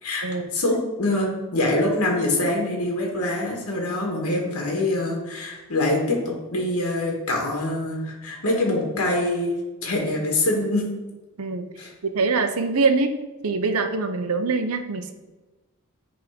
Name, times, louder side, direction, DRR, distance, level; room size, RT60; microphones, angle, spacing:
voice 1, 0.5-9.6 9.8-10.8 11.8-11.9, left 1 dB, 80° left, -1 dB, 1.7 m, -24 dB
voice 2, 11.4-11.7 12.0-13.1 13.4-15.1, right 4 dB, 85° right, 7 dB, 0.7 m, -23 dB
9.0 x 3.7 x 5.1 m, 1.2 s
head